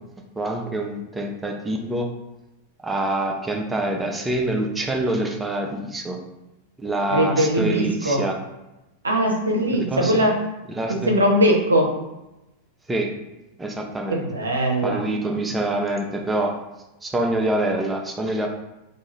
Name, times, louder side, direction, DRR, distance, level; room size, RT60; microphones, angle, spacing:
voice 1, 0.4-2.1 2.8-6.2 6.8-8.4 9.9-10.1 10.7-11.1 12.9-13.1 13.6-14.2 14.8-16.6 17.0-18.5, right 1 dB, 10° right, 1 dB, 0.5 m, -25 dB
voice 2, 7.1-8.2 9.0-10.4 10.9-11.9 14.1-15.1, equal, 75° right, 1 dB, 0.6 m, -20 dB
2.6 x 2.3 x 3.0 m, 0.97 s
figure-of-eight pair, 90°, 0 cm